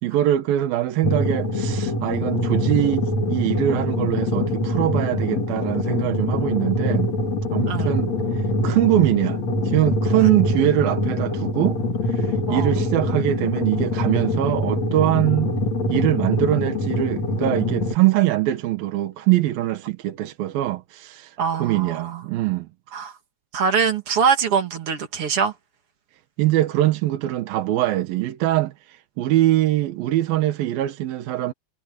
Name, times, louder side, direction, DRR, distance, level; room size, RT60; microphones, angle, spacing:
voice 1, 0.0-7.1 7.5-9.4 9.6-15.5 15.9-22.7 26.4-31.5, right 14 dB, 75° right, 2.9 m, -23 dB
sound 1, 1.0-17.9, left 1 dB, 45° left, 4.3 m, -24 dB
voice 2, 12.5-12.8 21.4-22.2 22.9-23.1 23.5-25.5, right 6 dB, 45° right, 2.4 m, -23 dB
omnidirectional pair, 4.4 m